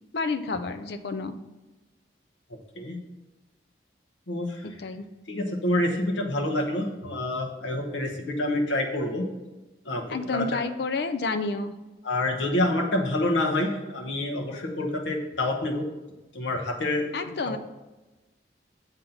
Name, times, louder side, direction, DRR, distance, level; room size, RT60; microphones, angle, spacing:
voice 1, 0.1-1.3 4.6-5.0 10.1-11.7 17.1-17.6, left 3 dB, 60° left, 8 dB, 0.5 m, -30 dB
voice 2, 4.3-4.7 5.3-9.3 9.8-10.4 12.0-15.8 16.3-17.1 17.5-17.6, left 1 dB, 80° left, 1 dB, 0.9 m, -27 dB
7.3 x 3.9 x 5.6 m, 1.1 s
head